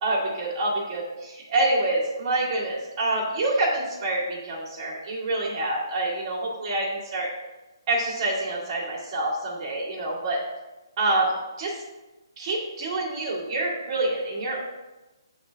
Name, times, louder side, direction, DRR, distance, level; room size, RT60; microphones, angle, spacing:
voice 1, 0.0-6.8 7.1-7.3 7.9-10.4 11.0-11.3 11.6-11.8 12.4-14.6, right 2 dB, 25° right, -12 dB, 1.7 m, -26 dB
8.1 x 3.3 x 3.7 m, 1.1 s
hypercardioid pair, 165°, 3 cm